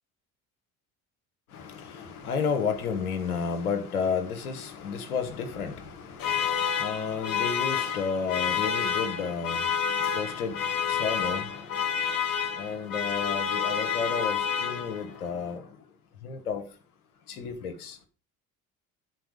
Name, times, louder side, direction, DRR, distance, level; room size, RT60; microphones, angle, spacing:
voice 1, 1.5-11.6 12.6-15.6 16.2-16.6 17.4-17.9, left 6 dB, 90° left, 1.1 m, -32 dB
sound 1, 6.2-15.2, left 7 dB, 50° left, 2.0 m, -29 dB
9.1 x 4.0 x 4.9 m
hypercardioid pair, 65°, 43 cm